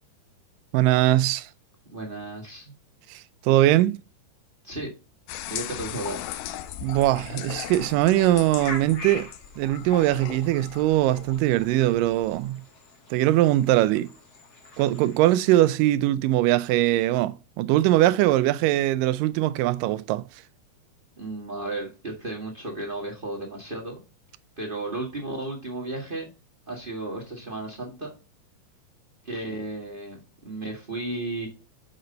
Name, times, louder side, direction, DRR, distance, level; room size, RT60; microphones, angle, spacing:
voice 1, 0.7-1.5 3.1-4.0 6.8-9.3 9.6-12.6 13.1-14.1 14.8-20.3, right 15 dB, 85° right, 2.2 m, -21 dB
voice 2, 1.9-2.7 4.6-4.9 5.5-6.3 21.2-23.9 24.6-26.3 26.7-28.1 29.2-31.5, right 2 dB, 25° right, 1.2 m, -34 dB
sound 1, 5.3-12.5, left 13 dB, 85° left, 2.3 m, -38 dB
sound 2, 6.6-15.6, left 2 dB, 35° left, 1.7 m, -44 dB
7.5 x 5.7 x 3.9 m
omnidirectional pair, 3.8 m